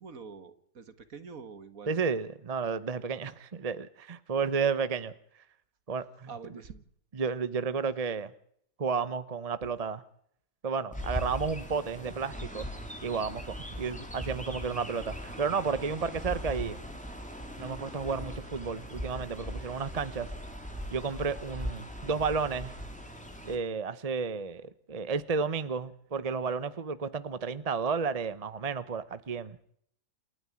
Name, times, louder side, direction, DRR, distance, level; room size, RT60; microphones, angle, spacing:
voice 1, 0.0-2.1 6.3-6.8 13.9-14.1, right 5 dB, 55° right, 11 dB, 2.0 m, -46 dB
voice 2, 1.9-5.1 5.9-6.6 7.1-8.3 8.8-10.0 10.6-12.7 13.0-16.8 17.6-20.3 20.9-22.7 23.4-29.6, right 5 dB, 30° right, 14 dB, 0.8 m, -32 dB
Chirp tweet, 10.9-23.6, equal, 5° left, 3.6 m, -40 dB
28.5 x 9.6 x 9.8 m, 0.66 s
omnidirectional pair, 1.7 m